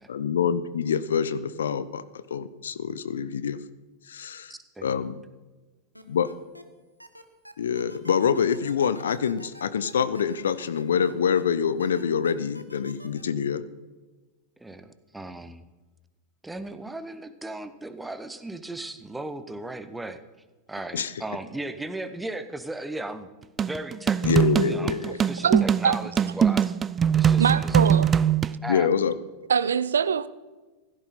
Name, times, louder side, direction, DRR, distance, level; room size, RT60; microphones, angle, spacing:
voice 1, 0.1-2.0 2.3-3.6 4.1-4.5 4.8-5.2 6.1-6.3 7.6-13.6 20.9-21.1 24.2-25.2 28.7-29.1, left 7 dB, 65° left, 0.7 m, -25 dB
voice 2, 4.5-5.1 14.6-15.6 16.4-20.2 20.7-23.3 23.6-26.8 27.1-28.2 28.6-28.9, right 2 dB, 5° right, 1.0 m, -37 dB
sound 1, 5.9-6.6 7.0-11.4 11.8-13.2, equal, 90° right, 1.2 m, -47 dB
sound 2, 23.6-28.6, right 8 dB, 20° right, 0.4 m, -22 dB
voice 3, 25.4-25.9 27.4-28.2 29.5-30.3, right 7 dB, 70° right, 0.6 m, -23 dB
15.5 x 13.5 x 4.2 m
figure-of-eight pair, 90°, 0 cm